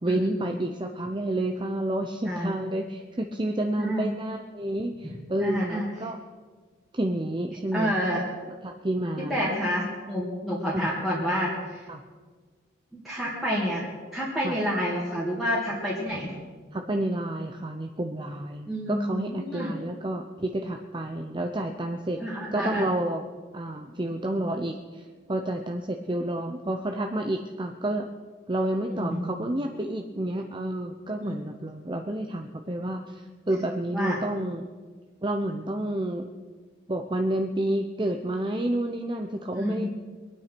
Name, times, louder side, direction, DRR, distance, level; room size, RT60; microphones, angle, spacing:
voice 1, 0.0-6.2 6.9-8.0 8.6-9.5 10.7-10.9 11.9-12.0 14.4-14.6 16.7-22.2 22.5-23.2 23.5-28.1 28.5-34.7 35.2-36.3 36.9-39.9, right 1 dB, 25° right, 4 dB, 0.7 m, -30 dB
voice 2, 2.3-2.6 3.8-4.1 5.4-5.9 7.7-8.2 9.3-11.8 13.0-13.9 14.1-16.3 18.7-19.7 22.2-22.8 28.9-29.3 31.2-31.4 33.9-34.2 39.6-39.9, equal, ahead, -7 dB, 2.5 m, -28 dB
23.0 x 8.9 x 6.0 m, 1.5 s
head